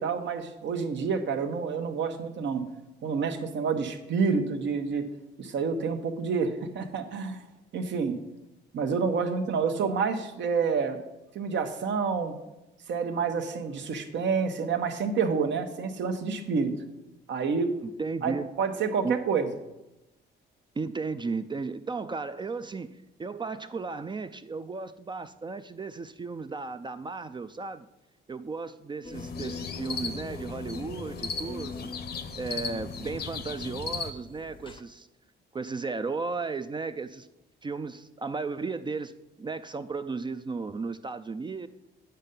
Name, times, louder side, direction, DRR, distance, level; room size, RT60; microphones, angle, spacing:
voice 1, 0.0-2.7 3.0-5.1 5.4-7.4 7.7-8.2 8.7-11.0 11.3-12.3 12.9-16.7 17.3-17.7 18.2-19.5, right 5 dB, 65° right, 7 dB, 1.0 m, -28 dB
voice 2, 17.8-18.5 19.0-19.2 20.8-27.9 28.3-31.9 32.4-35.1 35.5-37.3 37.6-39.1 39.4-41.7, right 4 dB, 25° right, 11 dB, 0.4 m, -35 dB
sound 1, 29.0-34.8, left 3 dB, 25° left, 0.6 m, -45 dB
sound 2, 29.1-34.1, left 5 dB, 55° left, 0.7 m, -36 dB
9.0 x 5.6 x 5.3 m, 0.94 s
cardioid pair, 90°, 20 cm